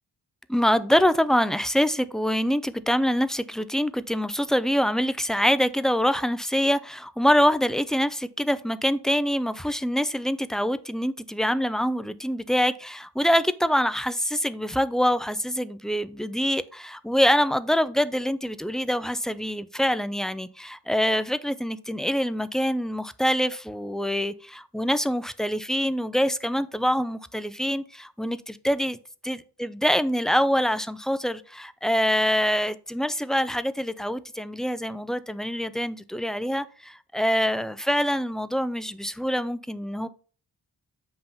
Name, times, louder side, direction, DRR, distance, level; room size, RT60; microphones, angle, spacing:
voice 1, 0.5-29.0 29.3-40.1, equal, ahead, 0.3 m, -25 dB
7.7 x 2.9 x 5.4 m
wide cardioid pair, 95°, 42 cm